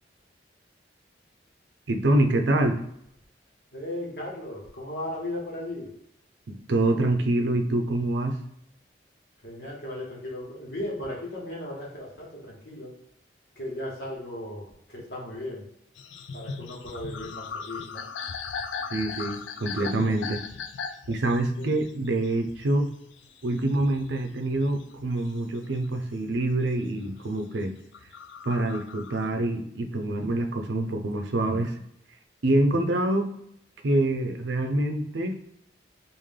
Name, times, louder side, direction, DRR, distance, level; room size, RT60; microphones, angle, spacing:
voice 1, 1.9-2.8 6.5-8.4 18.9-20.4 21.1-22.9 23.4-27.7 28.5-31.8 32.4-33.3 33.8-35.4, right 1 dB, 80° right, 4 dB, 0.6 m, -25 dB
voice 2, 3.7-5.9 9.4-12.9 13.5-15.6 16.3-18.0 21.5-21.7, left 1 dB, 60° left, -4 dB, 1.4 m, -36 dB
sound 1, 16.0-25.9 26.3-27.3 27.8-29.3, left 5 dB, 90° left, 0.4 m, -39 dB
3.3 x 2.6 x 3.6 m, 0.74 s
head